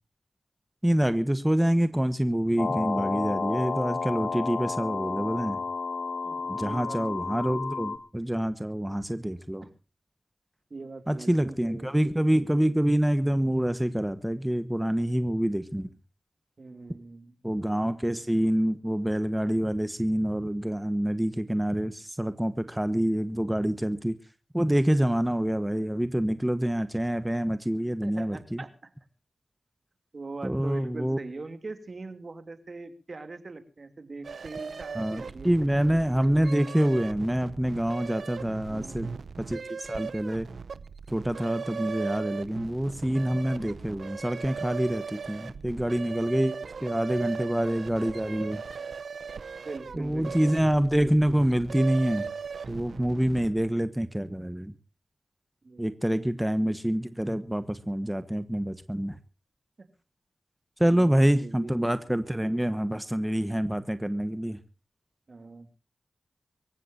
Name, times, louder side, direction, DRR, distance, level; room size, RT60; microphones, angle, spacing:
voice 1, 0.8-5.6 6.5-9.6 11.1-15.9 17.4-24.1 24.5-28.6 30.4-31.2 35.0-39.1 39.4-40.5 41.1-46.5 46.8-48.6 50.0-52.3 52.7-54.7 55.8-59.1 60.8-64.6, right 1 dB, 10° right, 11 dB, 1.3 m, -26 dB
sound 1, 2.6-8.0, left 4 dB, 60° left, 1.8 m, -31 dB
voice 2, 6.2-7.0 9.6-9.7 10.7-11.9 16.6-17.3 28.0-28.9 30.1-36.0 38.7-39.3 49.6-50.6 55.6-56.3 60.8-61.7 65.3-65.8, right 3 dB, 55° right, 9 dB, 3.0 m, -42 dB
sound 2, 34.2-53.7, right 5 dB, 80° right, 0.8 m, -38 dB
24.5 x 15.0 x 2.8 m, 0.33 s
cardioid pair, 50°, 0 cm